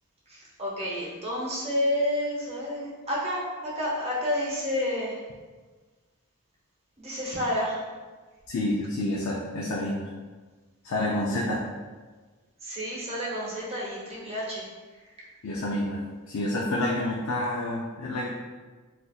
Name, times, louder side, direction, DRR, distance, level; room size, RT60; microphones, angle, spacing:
voice 1, 0.3-5.2 7.0-7.8 12.6-15.3, left 1 dB, 30° right, -6 dB, 1.0 m, -30 dB
voice 2, 8.5-10.1 10.8-11.6 15.4-18.3, left 1 dB, 65° left, -4 dB, 0.4 m, -28 dB
3.9 x 2.5 x 2.4 m, 1.4 s
head